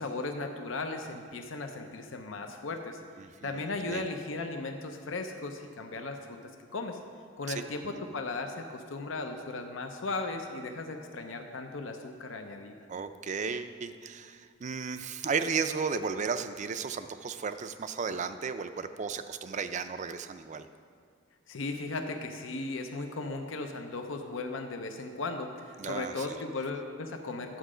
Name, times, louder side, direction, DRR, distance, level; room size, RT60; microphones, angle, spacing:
voice 1, 0.0-3.0 3.4-6.2 6.7-7.0 7.4-12.7 21.5-27.6, left 3 dB, 75° left, 5 dB, 0.7 m, -36 dB
voice 2, 3.2-3.6 3.9-4.0 7.5-7.6 12.9-20.7 25.8-26.3, right 5 dB, 40° right, 10 dB, 0.4 m, -34 dB
10.5 x 7.4 x 5.0 m, 2.1 s
head